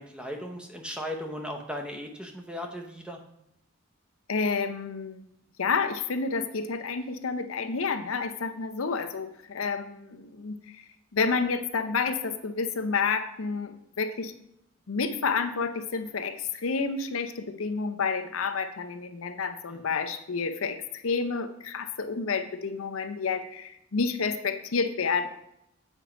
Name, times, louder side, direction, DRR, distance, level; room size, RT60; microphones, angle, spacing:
voice 1, 0.0-3.2 19.7-19.9, equal, 5° right, 3 dB, 0.7 m, -37 dB
voice 2, 4.3-5.2 5.6-10.8 11.1-14.3 14.9-20.8 21.0-25.3, left 5 dB, 80° left, 8 dB, 0.6 m, -29 dB
7.8 x 4.5 x 5.0 m, 0.79 s
head